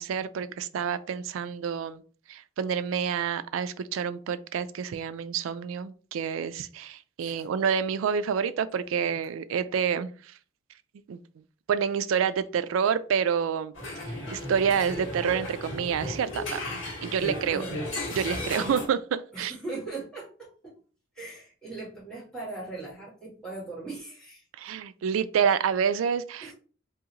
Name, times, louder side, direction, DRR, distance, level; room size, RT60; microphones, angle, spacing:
voice 1, 0.0-2.0 2.3-10.1 11.1-11.2 11.7-13.7 14.3-16.6 17.0-17.7 18.1-19.5 24.6-26.5, right 7 dB, 90° right, 0.3 m, -28 dB
sound 1, 13.7-18.9, left 1 dB, 75° left, 1.5 m, -35 dB
voice 2, 17.5-17.8 19.3-20.7 21.1-24.4 26.4-26.5, right 3 dB, 5° left, 1.8 m, -39 dB
3.6 x 2.7 x 3.0 m
head